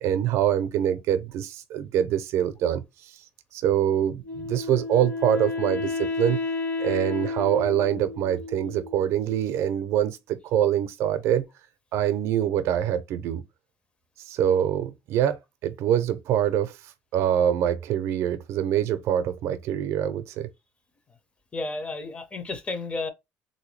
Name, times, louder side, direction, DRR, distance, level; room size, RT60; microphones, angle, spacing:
voice 1, 0.0-3.2 3.5-6.4 6.8-11.4 11.9-13.4 14.2-16.8 17.1-20.5, right 10 dB, 70° right, 0.5 m, -25 dB
Wind instrument woodwind instrument, 4.2-9.3, left 3 dB, 40° left, 1.4 m, -31 dB
voice 2, 21.5-23.1, left 3 dB, 25° left, 0.7 m, -32 dB
3.4 x 2.7 x 3.1 m
cardioid pair, 130°, 5 cm